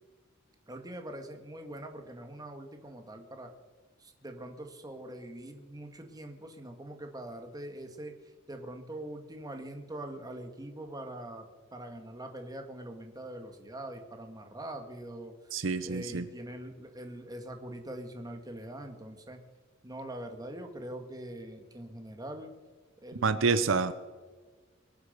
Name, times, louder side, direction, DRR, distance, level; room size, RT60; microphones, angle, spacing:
voice 1, 0.7-3.5 4.0-8.1 8.5-11.5 11.7-15.3 15.8-19.4 19.8-22.5 23.0-23.4, right 1 dB, 20° right, 5 dB, 1.8 m, -43 dB
voice 2, 15.5-16.3 23.2-23.9, right 4 dB, 85° right, 13 dB, 0.8 m, -27 dB
22.5 x 8.1 x 6.7 m, 1.4 s
head